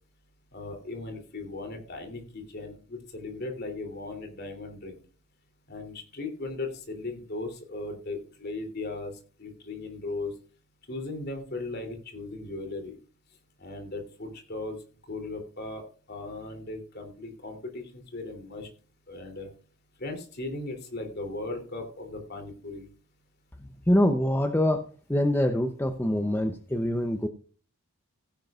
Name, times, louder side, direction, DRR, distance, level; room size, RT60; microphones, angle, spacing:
voice 1, 0.5-5.0 5.7-9.1 9.4-10.3 10.9-13.0 13.6-14.8 15.1-15.8 16.1-18.7 19.1-19.5 20.0-22.9, left 2 dB, 45° left, 5 dB, 3.1 m, -37 dB
voice 2, 23.6-27.3, left 1 dB, 10° left, 7 dB, 0.6 m, -25 dB
16.0 x 10.5 x 2.4 m, 0.39 s
head